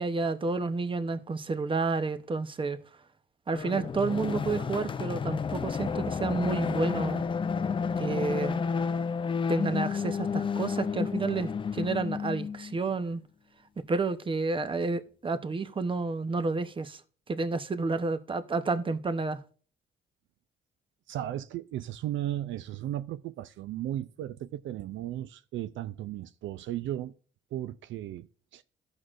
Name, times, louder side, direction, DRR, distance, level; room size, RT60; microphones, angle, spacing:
voice 1, 0.0-2.8 3.5-7.2 8.0-8.6 9.5-13.2 13.9-17.0 17.3-19.4, right 3 dB, 25° right, 0.7 m, -30 dB
sound 1, 3.5-12.7, left 6 dB, 25° left, 0.4 m, -31 dB
voice 2, 21.1-27.1 27.5-28.3 28.5-28.6, right 12 dB, 75° right, 0.4 m, -35 dB
14.0 x 6.3 x 2.5 m
cardioid pair, 90°, 20 cm